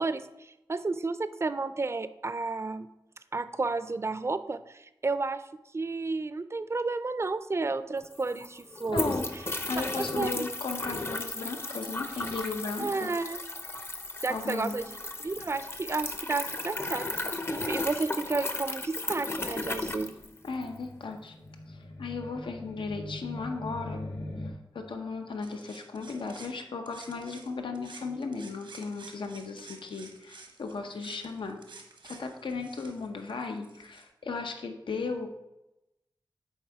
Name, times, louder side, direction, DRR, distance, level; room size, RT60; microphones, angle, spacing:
voice 1, 0.0-2.9 3.3-5.4 5.7-9.1 10.0-10.3 12.8-13.4 14.2-14.9 15.2-17.1 17.5-20.1, right 3 dB, 35° right, 13 dB, 0.4 m, -32 dB
sound 1, 7.7-7.8 8.0-20.8, left 2 dB, 30° left, 0.6 m, -35 dB
voice 2, 8.9-9.3 9.7-13.1 14.3-14.8 20.4-21.3 21.7-24.1 24.4-31.6 32.0-35.3, left 4 dB, 85° left, 5 dB, 0.7 m, -36 dB
sound 2, 20.5-24.5, left 1 dB, 60° left, 1.1 m, -41 dB
sound 3, 25.4-27.5 27.7-34.0, right 4 dB, 90° right, 1.0 m, -51 dB
7.3 x 4.3 x 4.6 m, 0.95 s
wide cardioid pair, 75°, 8 cm